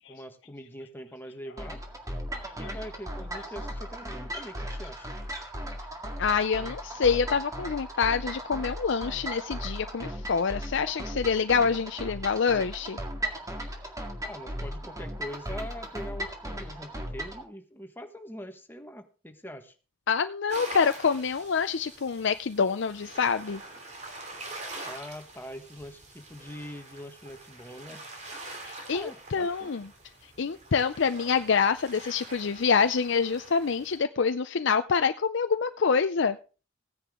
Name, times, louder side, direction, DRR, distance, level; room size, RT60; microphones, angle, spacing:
voice 1, 0.1-1.8 2.6-5.1 14.2-19.7 24.8-28.0 28.9-29.7, equal, 10° left, 6 dB, 1.4 m, -43 dB
sound 1, 1.6-17.4, equal, 15° right, 2.0 m, -37 dB
voice 2, 6.2-13.0 20.1-23.6 28.6-29.9 30.4-36.4, left 5 dB, 65° left, 9 dB, 0.5 m, -26 dB
sound 2, 20.5-34.0, right 2 dB, 35° right, 3.0 m, -45 dB
16.0 x 10.0 x 3.7 m, 0.35 s
head